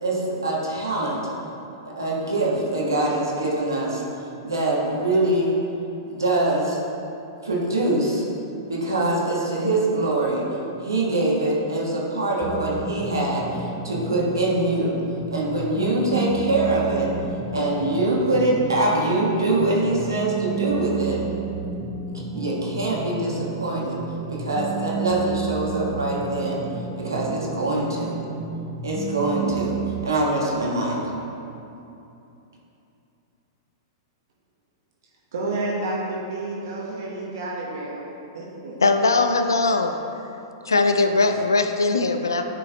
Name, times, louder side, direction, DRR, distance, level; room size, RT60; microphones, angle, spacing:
voice 1, 0.0-1.3 1.8-4.0 4.4-5.6 6.1-6.8 7.4-8.2 8.7-10.5 10.8-15.0 15.3-17.1 17.5-21.2 22.3-24.0 24.3-26.6 27.0-28.2 28.8-29.8 30.0-31.0, right 2 dB, 90° right, -4 dB, 1.5 m, -24 dB
sound 1, 12.4-30.0, right 5 dB, 5° right, 0.9 m, -31 dB
voice 2, 35.3-38.1 38.3-38.8, right 2 dB, 70° right, -4 dB, 1.2 m, -30 dB
voice 3, 38.8-40.0 40.7-42.4, left 3 dB, 90° left, 7 dB, 0.5 m, -20 dB
9.4 x 5.3 x 3.0 m, 2.8 s
hypercardioid pair, 110°, 2 cm